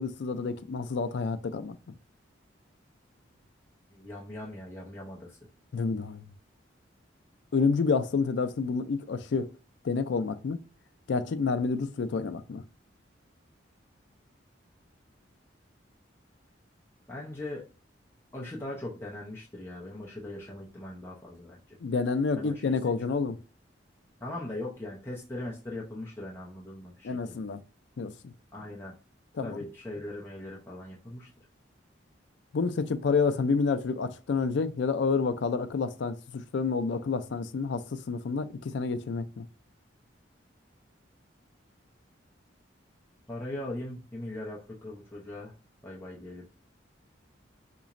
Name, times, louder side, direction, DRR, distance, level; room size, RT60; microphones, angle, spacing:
voice 1, 0.0-1.8 5.7-6.3 7.5-9.5 9.8-10.6 11.1-12.6 21.8-23.4 27.0-27.6 28.0-28.3 29.4-29.6 32.5-39.4, left 4 dB, 65° left, 0.4 m, -29 dB
voice 2, 3.9-5.4 17.1-17.7 18.3-21.8 22.3-22.7 24.2-27.1 28.5-28.9 29.4-31.3 43.3-45.5 45.8-46.4, left 1 dB, 15° left, 0.6 m, -40 dB
4.1 x 3.0 x 2.5 m
head